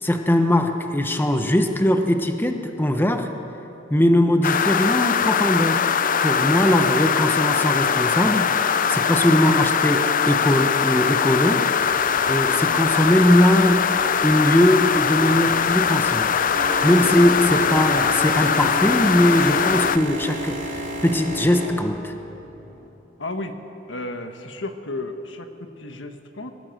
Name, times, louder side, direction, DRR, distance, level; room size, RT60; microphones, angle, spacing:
voice 1, 0.0-3.3 3.9-5.9 6.2-11.7 12.3-13.9 14.2-16.3 16.8-22.1, left 1 dB, 10° left, 5 dB, 1.0 m, -20 dB
sound 1, 4.4-20.0, left 7 dB, 45° left, 0.6 m, -21 dB
sound 2, 11.8-21.2, right 2 dB, 85° right, 3.3 m, -44 dB
Boat Water vehicle, 16.5-22.9, equal, 45° right, 2.6 m, -32 dB
voice 2, 23.2-23.6 23.9-26.5, left 2 dB, 70° left, 6 dB, 1.5 m, -33 dB
22.0 x 18.5 x 7.8 m, 3.0 s
head